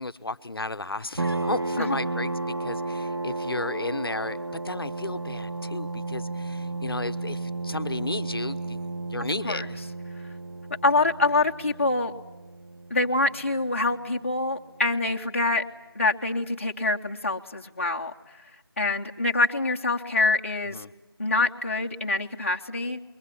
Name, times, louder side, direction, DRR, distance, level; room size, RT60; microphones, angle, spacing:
voice 1, 0.0-9.8 20.7-20.9, left 2 dB, 65° left, 13 dB, 0.8 m, -34 dB
sound 1, 1.2-14.4, right 2 dB, 80° right, 1.0 m, -33 dB
voice 2, 10.8-12.1 12.9-15.6 15.9-18.1 18.8-20.8 21.2-23.0, left 2 dB, 30° left, 2 dB, 0.8 m, -25 dB
27.5 x 22.0 x 8.4 m, 1.0 s
figure-of-eight pair, 170°, 13 cm